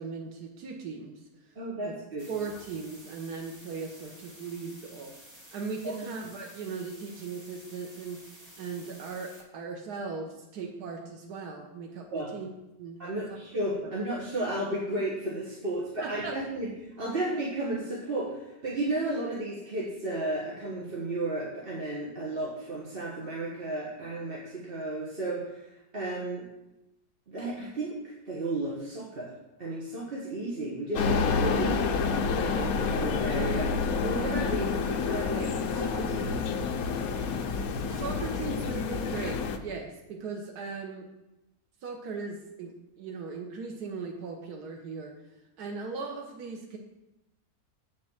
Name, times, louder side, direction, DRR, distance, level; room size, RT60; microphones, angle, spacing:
voice 1, 0.0-1.9 2.3-5.2 5.5-12.5 12.8-13.4 13.8-13.9 16.0-16.4 37.9-41.1 41.8-46.8, right 4 dB, 80° right, 1 dB, 1.5 m, -38 dB
voice 2, 1.5-2.3 5.8-5.9 12.1-12.3 13.0-16.7 17.0-26.5 27.3-29.3 29.6-31.8 32.4-36.4, right 1 dB, 40° right, -5 dB, 1.5 m, -33 dB
sound 1, 2.2-9.4, equal, 20° right, 1.5 m, -52 dB
sound 2, 30.9-39.6, left 5 dB, 70° left, 1.2 m, -28 dB
7.8 x 5.4 x 7.1 m, 0.93 s
omnidirectional pair, 1.6 m